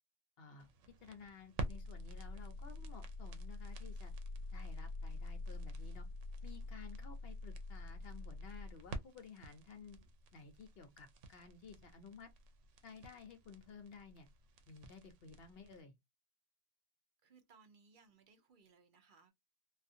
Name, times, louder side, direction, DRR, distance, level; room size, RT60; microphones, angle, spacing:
voice 1, 0.4-0.7 1.0-4.1 4.5-6.1 6.4-10.0 10.3-12.3 12.8-14.3 14.7-15.9, left 5 dB, 65° left, 0.8 m, -55 dB
sound 1, 0.6-15.8, left 1 dB, 85° right, 0.9 m, -46 dB
voice 2, 17.2-19.3, right 5 dB, 55° right, 0.6 m, -65 dB
2.4 x 2.4 x 2.6 m
omnidirectional pair, 1.2 m